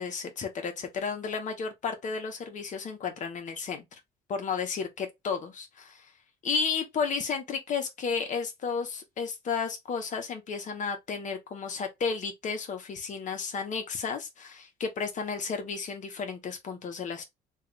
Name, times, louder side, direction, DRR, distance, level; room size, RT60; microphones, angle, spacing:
voice 1, 0.0-4.0 4.3-6.1 6.4-17.2, left 5 dB, 50° left, 1.1 m, -33 dB
3.3 x 2.5 x 3.2 m
cardioid pair, 110°, 17 cm